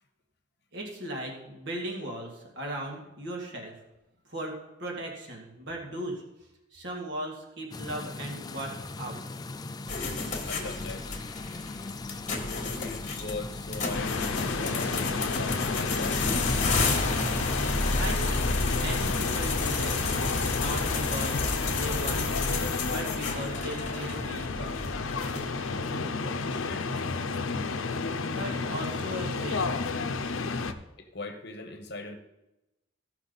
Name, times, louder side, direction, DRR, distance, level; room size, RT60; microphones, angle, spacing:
voice 1, 0.7-3.8 4.3-6.2 6.7-9.2 18.0-20.0 20.5-21.4 21.7-24.8 28.2-29.7, right 1 dB, 55° right, 0 dB, 2.1 m, -37 dB
sound 1, 7.7-16.8, left 3 dB, 20° left, 0.3 m, -39 dB
sound 2, 9.9-25.8, left 3 dB, 35° left, 1.4 m, -31 dB
voice 2, 10.5-11.1 12.7-14.2 14.6-16.2 25.7-26.9 31.0-32.2, left 3 dB, 55° left, 6 dB, 1.1 m, -40 dB
sound 3, 13.9-30.7, left 4 dB, 75° left, 0.7 m, -31 dB
15.5 x 5.9 x 4.1 m, 0.95 s
head